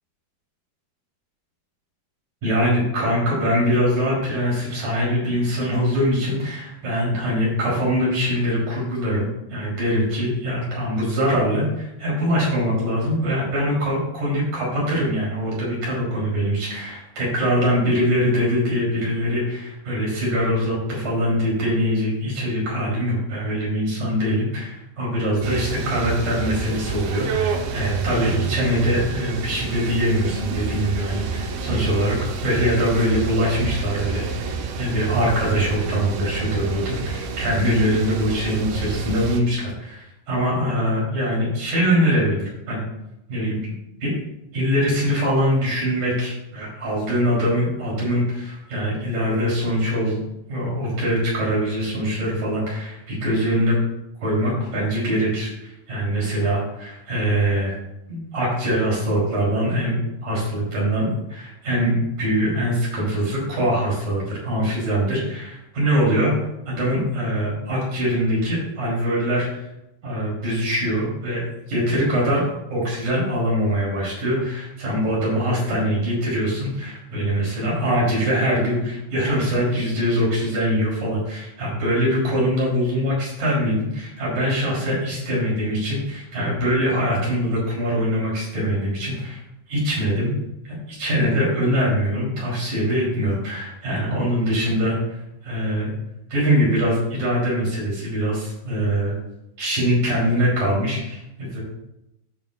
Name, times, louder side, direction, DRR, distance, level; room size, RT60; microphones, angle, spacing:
voice 1, 2.4-42.8 43.3-43.7 44.0-44.1 44.5-50.2 50.5-53.7 54.2-57.8 58.1-66.3 66.7-69.5 70.0-71.4 71.7-72.4 72.7-89.4 89.7-90.3 90.6-95.9 96.3-99.1 99.6-101.6, equal, 50° right, -5 dB, 4.2 m, -23 dB
sound 1, 25.4-39.4, right 5 dB, 80° right, 2.5 m, -28 dB
16.0 x 5.6 x 2.3 m, 0.88 s
omnidirectional pair, 4.6 m